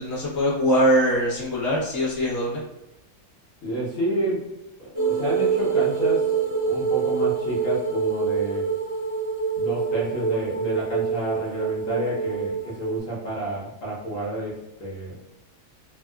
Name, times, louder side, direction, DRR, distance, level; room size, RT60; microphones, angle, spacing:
voice 1, 0.0-2.6, equal, 25° left, -8 dB, 0.3 m, -22 dB
voice 2, 3.6-4.4 4.8-6.3 6.6-8.7 9.5-15.1, right 1 dB, 50° left, -5 dB, 1.1 m, -30 dB
sound 1, 4.9-13.0, right 5 dB, 35° right, 0.7 m, -25 dB
3.4 x 2.3 x 2.3 m, 0.96 s
omnidirectional pair, 2.0 m